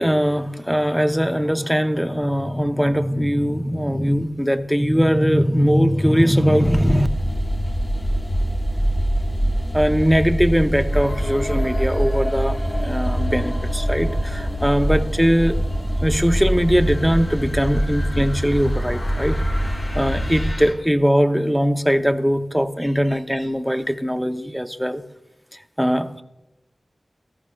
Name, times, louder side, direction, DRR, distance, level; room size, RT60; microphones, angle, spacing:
voice 1, 0.0-7.1 9.7-15.6 16.0-25.0 25.8-26.2, equal, ahead, 8 dB, 0.6 m, -20 dB
sound 1, 6.6-20.5, equal, 25° left, 1.0 m, -24 dB
sound 2, 10.9-20.7, left 1 dB, 60° left, 2.6 m, -33 dB
14.5 x 13.5 x 2.3 m, 0.98 s
wide cardioid pair, 75°, 0 cm